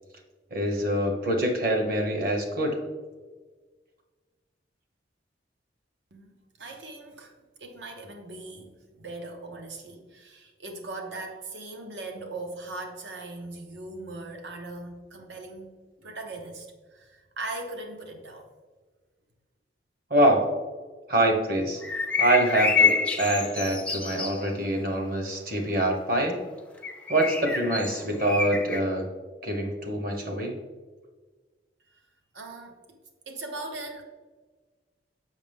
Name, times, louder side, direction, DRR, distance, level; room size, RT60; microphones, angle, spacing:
voice 1, 0.5-2.8 20.1-20.5 21.1-21.8 22.2-26.4 27.1-29.1 29.4-30.6, right 1 dB, 50° right, 3 dB, 1.3 m, -25 dB
voice 2, 6.6-7.3 7.6-15.7 16.0-18.5 31.9-32.0 32.3-33.0 33.3-34.1, right 2 dB, 80° right, 3 dB, 1.0 m, -39 dB
sound 1, 21.8-24.4 26.8-28.8, left 4 dB, 5° left, 0.4 m, -27 dB
7.2 x 6.3 x 3.5 m, 1.4 s
head